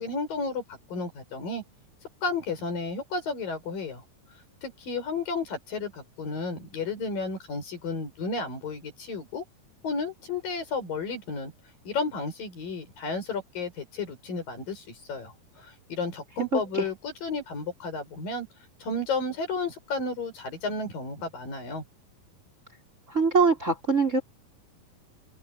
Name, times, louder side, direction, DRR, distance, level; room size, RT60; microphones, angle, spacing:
voice 1, 0.0-1.6 2.2-4.0 4.6-9.4 9.8-11.5 11.9-18.5 18.8-21.8, left 3 dB, 80° left, 7.8 m, -32 dB
voice 2, 16.5-16.8 23.1-24.2, right 4 dB, 20° right, 4.8 m, -23 dB
open air
omnidirectional pair, 3.9 m